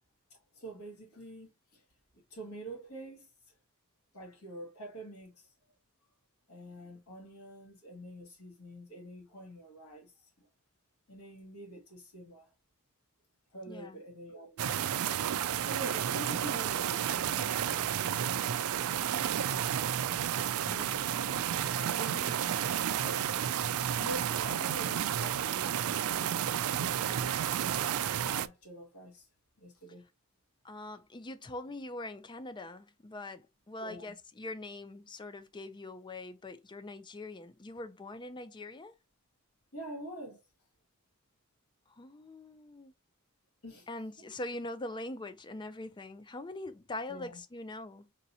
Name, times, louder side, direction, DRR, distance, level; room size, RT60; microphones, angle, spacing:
voice 1, 0.5-1.8 2.3-3.3 4.1-5.5 6.5-10.1 11.1-12.5 13.5-14.9 15.6-18.8 22.0-22.4 22.9-23.5 23.9-26.5 27.1-27.4 28.1-29.3 29.6-30.0 33.8-34.1 39.7-40.4 43.6-43.9 47.1-47.4, right 1 dB, 75° left, 2.2 m, -46 dB
voice 2, 13.7-14.0 20.0-21.2 30.6-38.9 41.9-42.9 43.9-48.1, left 2 dB, 20° left, 0.5 m, -43 dB
sound 1, 14.6-28.5, right 10 dB, 70° right, 0.4 m, -31 dB
4.1 x 3.8 x 2.8 m
head